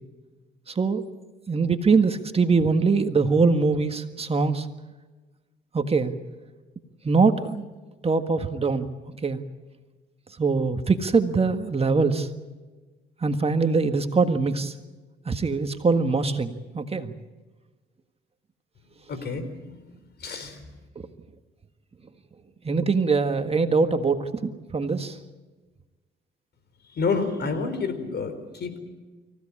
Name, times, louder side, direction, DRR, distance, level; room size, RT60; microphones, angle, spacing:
voice 1, 0.7-1.0 1.5-4.7 5.7-6.1 7.0-7.6 8.0-8.9 9.2-9.4 10.4-12.3 13.2-14.7 15.2-17.1 22.6-25.2, right 4 dB, 30° right, 7 dB, 1.7 m, -23 dB
voice 2, 19.1-19.8 20.2-20.7 26.9-28.8, left 4 dB, 55° left, 10 dB, 4.2 m, -29 dB
25.0 x 16.0 x 8.6 m, 1.3 s
cardioid pair, 90°, 20 cm